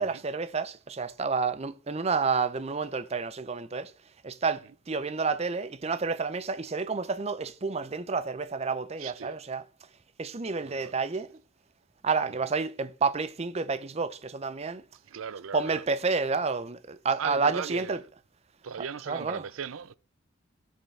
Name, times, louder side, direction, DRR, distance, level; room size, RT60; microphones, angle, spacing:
voice 1, 0.0-3.9 4.2-9.7 10.2-11.3 12.0-14.8 15.5-18.0 19.1-19.4, right 4 dB, 30° right, 0.6 m, -30 dB
voice 2, 9.0-9.4 10.6-11.0 15.1-15.8 17.2-18.0 18.6-19.9, right 7 dB, 90° right, 0.5 m, -38 dB
19.0 x 6.5 x 3.4 m
head